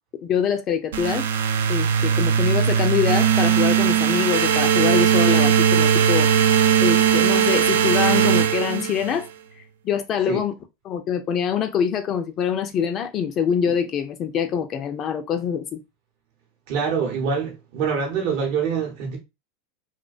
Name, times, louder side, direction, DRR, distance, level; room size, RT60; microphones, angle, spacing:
voice 1, 0.2-1.2 1.7-6.3 6.8-9.3 9.6-10.5 10.8-15.8, left 8 dB, 40° left, 0.3 m, -24 dB
sound 1, 0.9-9.2, right 8 dB, 85° right, 0.3 m, -19 dB
voice 2, 16.7-19.2, right 6 dB, 60° right, 0.8 m, -25 dB
2.4 x 2.1 x 2.4 m
hypercardioid pair, 110°, 0 cm